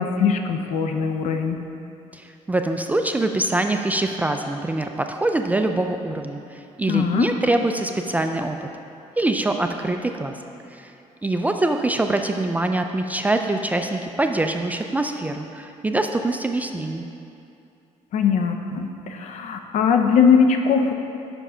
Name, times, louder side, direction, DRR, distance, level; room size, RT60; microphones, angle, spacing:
voice 1, 0.0-1.6 6.9-7.3 18.1-20.9, left 6 dB, 70° left, 5 dB, 0.6 m, -20 dB
voice 2, 2.1-8.7 9.2-10.3 10.7-10.9 11.2-17.0, right 2 dB, 10° right, 5 dB, 0.3 m, -24 dB
7.0 x 6.1 x 5.5 m, 2.6 s
cardioid pair, 120°, 13 cm